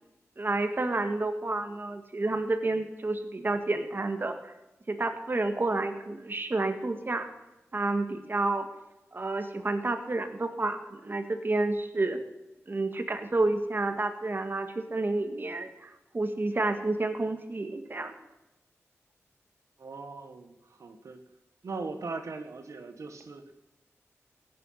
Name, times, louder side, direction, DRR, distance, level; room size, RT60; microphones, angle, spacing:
voice 1, 0.4-4.5 4.9-7.3 7.7-8.7 9.1-12.2 12.7-18.1, right 2 dB, 45° right, 6 dB, 1.7 m, -30 dB
voice 2, 19.8-21.2 21.6-23.5, right 3 dB, 90° right, 6 dB, 1.5 m, -39 dB
16.5 x 9.6 x 5.7 m, 0.96 s
wide cardioid pair, 80°, 5 cm